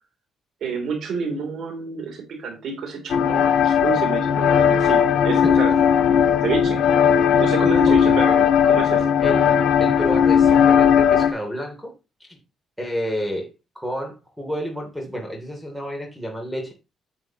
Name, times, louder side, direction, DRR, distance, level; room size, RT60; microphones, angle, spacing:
voice 1, 0.6-5.8 6.4-6.8 7.4-9.1, right 5 dB, 70° right, 3.4 m, -29 dB
sound 1, 3.1-11.3, left 8 dB, 75° left, 1.3 m, -17 dB
voice 2, 7.8-8.2 9.2-11.9 12.3-12.4 12.8-16.7, equal, ahead, 3.1 m, -30 dB
9.4 x 8.0 x 3.0 m
cardioid pair, 90°, 0 cm